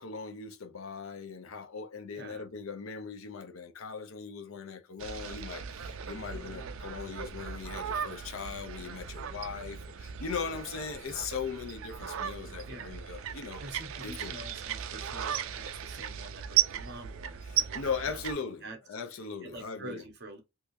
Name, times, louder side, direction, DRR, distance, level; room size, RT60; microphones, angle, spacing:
voice 1, 0.0-13.6 14.0-14.3 17.5-20.0, left 5 dB, 70° left, 0.6 m, -39 dB
voice 2, 2.1-2.4 6.3-6.8 10.4-10.6 12.6-12.9 13.6-18.8 19.4-20.4, right 2 dB, 50° right, 1.0 m, -47 dB
sound 1, 5.0-18.3, right 9 dB, 70° right, 0.4 m, -36 dB
3.4 x 2.8 x 2.5 m
head